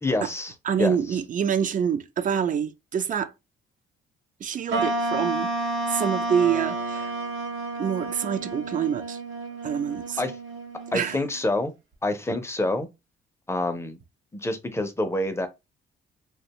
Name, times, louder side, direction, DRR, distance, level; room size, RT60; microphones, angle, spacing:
voice 1, 0.0-1.2 10.2-10.3 10.9-11.7 12.0-12.9 13.5-14.0 14.3-15.5, left 2 dB, 15° left, 0.5 m, -27 dB
voice 2, 0.7-3.3 4.4-5.5 5.9-7.1 7.8-9.2 9.6-10.2 10.9-11.2, right 8 dB, 40° right, 0.4 m, -26 dB
sound 1, 4.7-11.4, right 2 dB, 75° right, 0.7 m, -30 dB
2.4 x 2.2 x 2.8 m
cardioid pair, 90°, 20 cm